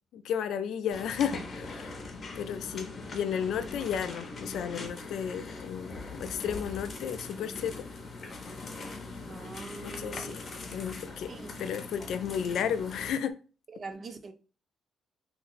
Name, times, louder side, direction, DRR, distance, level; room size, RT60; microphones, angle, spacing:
voice 1, 0.1-2.0 2.4-7.9 9.8-10.5 10.7-11.3 11.6-13.4, left 8 dB, 75° left, 0.3 m, -33 dB
sound 1, 0.9-13.1, left 3 dB, 40° left, 0.7 m, -41 dB
voice 2, 9.3-10.3 11.3-11.6 13.7-14.3, right 3 dB, 40° right, 0.3 m, -43 dB
2.5 x 2.0 x 3.9 m
cardioid pair, 115°, 0 cm